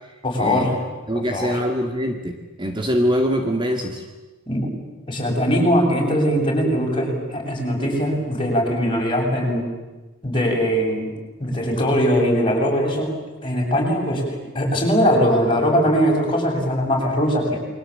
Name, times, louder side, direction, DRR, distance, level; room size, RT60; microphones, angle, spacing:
voice 1, 0.2-0.7 1.1-1.6 4.5-4.7 5.1-9.7 10.2-11.1 11.4-14.2 14.5-17.6, equal, 25° left, -1 dB, 7.8 m, -21 dB
voice 2, 1.1-4.0, equal, 25° right, 4 dB, 2.1 m, -23 dB
28.5 x 23.0 x 8.9 m, 1.2 s
head